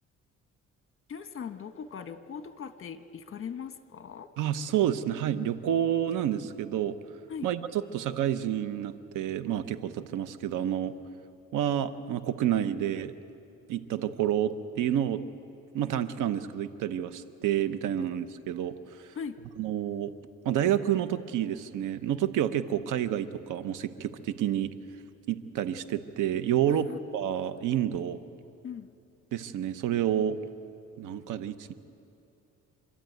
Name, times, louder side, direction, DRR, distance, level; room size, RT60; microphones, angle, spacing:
voice 1, 1.1-4.3 7.3-7.5 18.0-18.1 19.1-19.4 26.7-27.0 28.6-28.9, left 7 dB, 45° left, 9 dB, 1.3 m, -39 dB
voice 2, 4.4-7.0 7.4-10.9 11.5-13.1 13.7-15.2 15.7-18.7 19.6-20.1 20.4-24.7 25.3-26.9 27.1-28.2 29.3-30.4 31.0-31.7, right 10 dB, 90° right, 12 dB, 1.0 m, -29 dB
27.0 x 13.0 x 9.3 m, 2.7 s
cardioid pair, 90°, 30 cm